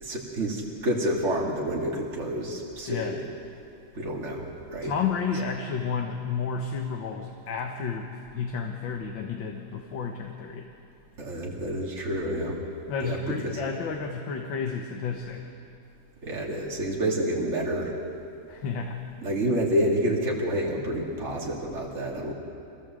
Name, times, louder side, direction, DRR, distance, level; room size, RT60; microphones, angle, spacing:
voice 1, 0.0-3.2 3.9-4.9 11.2-12.6 13.0-13.6 16.2-18.0 19.2-22.3, equal, 35° right, -3 dB, 2.9 m, -28 dB
voice 2, 4.8-10.7 12.9-15.4 18.5-19.0, left 5 dB, 85° left, 2 dB, 2.0 m, -31 dB
26.0 x 16.5 x 7.6 m, 2.6 s
omnidirectional pair, 2.0 m